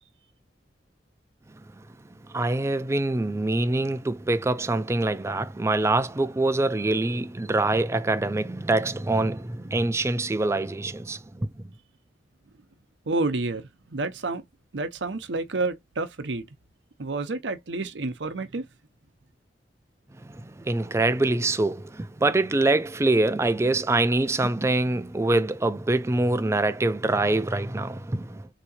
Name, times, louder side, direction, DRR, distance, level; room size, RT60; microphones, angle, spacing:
voice 1, 2.3-11.7 20.2-28.5, right 2 dB, 15° right, 0.4 m, -25 dB
voice 2, 13.1-14.4 14.7-16.5 17.0-18.6, right 3 dB, 75° right, 0.7 m, -29 dB
3.7 x 2.8 x 2.7 m
head